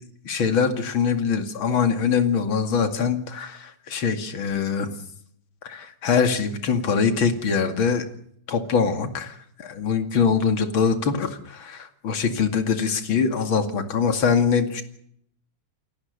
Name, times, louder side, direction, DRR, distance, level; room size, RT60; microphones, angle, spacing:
voice 1, 0.2-4.9 5.6-8.1 8.5-14.8, left 6 dB, 65° left, 7 dB, 3.1 m, -23 dB
29.5 x 18.0 x 6.7 m, 0.70 s
omnidirectional pair, 2.4 m